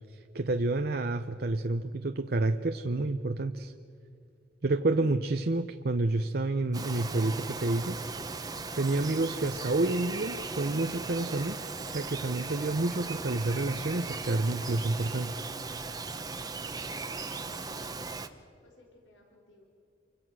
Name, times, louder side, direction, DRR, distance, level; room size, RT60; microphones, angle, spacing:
voice 1, 0.3-3.7 4.6-8.0 8.7-11.6 11.9-15.5, right 2 dB, 55° right, 7 dB, 0.7 m, -29 dB
Bird vocalization bird call bird song, 6.7-18.3, right 4 dB, 20° right, 1.0 m, -38 dB
voice 2, 17.3-18.1 18.4-19.6, left 1 dB, 90° left, -1 dB, 4.3 m, -58 dB
29.0 x 25.0 x 6.3 m, 2.5 s
head